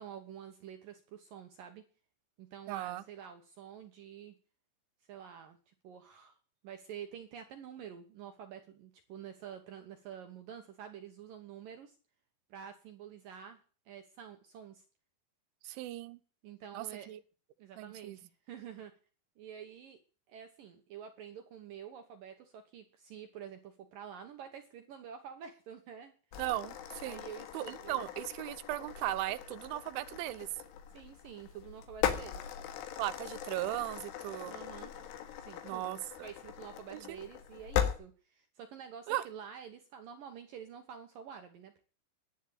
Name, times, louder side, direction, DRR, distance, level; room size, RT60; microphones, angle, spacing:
voice 1, 0.0-1.8 2.4-4.4 5.1-6.4 6.6-12.0 12.5-13.6 13.9-14.8 16.4-17.1 17.6-18.9 19.4-20.0 20.3-26.1 27.0-28.0 30.9-32.5 34.5-34.9 35.5-41.8, right 8 dB, 70° right, 2.2 m, -48 dB
voice 2, 2.7-3.0 15.6-16.2 16.7-17.2 17.8-18.2 26.4-27.2 27.5-30.5 33.0-34.6 35.6-36.0 36.9-37.2 39.1-39.2, right 15 dB, 85° right, 3.2 m, -37 dB
sound 1, 26.3-37.9, left 10 dB, 90° left, 4.0 m, -39 dB
11.0 x 10.0 x 8.6 m
omnidirectional pair, 5.4 m